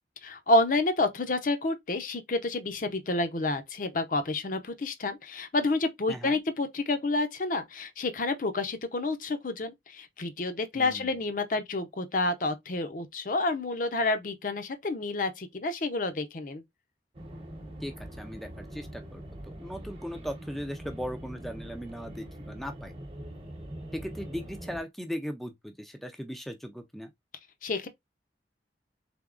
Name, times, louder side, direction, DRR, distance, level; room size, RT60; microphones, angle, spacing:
voice 1, 0.2-16.6 27.6-27.9, left 2 dB, 50° left, 0.6 m, -29 dB
voice 2, 6.1-6.4 10.7-11.1 17.8-23.0 23.9-27.1, equal, ahead, 0.4 m, -38 dB
sound 1, 17.1-24.8, right 1 dB, 30° right, 0.9 m, -43 dB
3.8 x 3.5 x 2.4 m
head